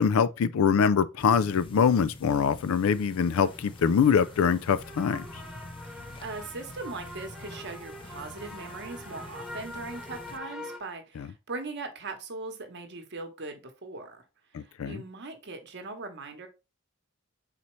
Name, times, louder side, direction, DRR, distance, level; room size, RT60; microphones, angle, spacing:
voice 1, 0.0-5.3 11.2-11.3 14.5-15.0, left 6 dB, 85° left, 0.4 m, -24 dB
sound 1, 1.2-10.4, left 2 dB, 25° left, 0.5 m, -47 dB
sound 2, 2.9-10.8, left 1 dB, ahead, 0.9 m, -45 dB
voice 2, 5.9-14.2 14.5-16.5, right 3 dB, 55° right, 1.0 m, -40 dB
4.2 x 4.1 x 3.0 m
head